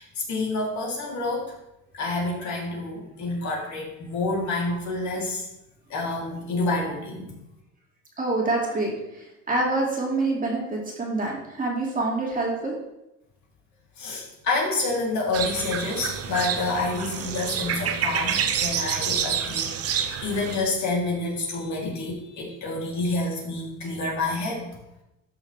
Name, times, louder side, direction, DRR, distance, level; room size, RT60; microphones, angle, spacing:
voice 1, 0.0-1.5 1.9-5.5 5.9-7.3 14.0-24.7, left 2 dB, 50° left, -3 dB, 3.3 m, -28 dB
voice 2, 8.2-12.7, right 2 dB, 20° right, -2 dB, 2.5 m, -26 dB
sound 1, 15.3-20.6, right 8 dB, 40° right, 0.9 m, -28 dB
12.5 x 6.2 x 3.4 m, 0.90 s
cardioid pair, 115°, 37 cm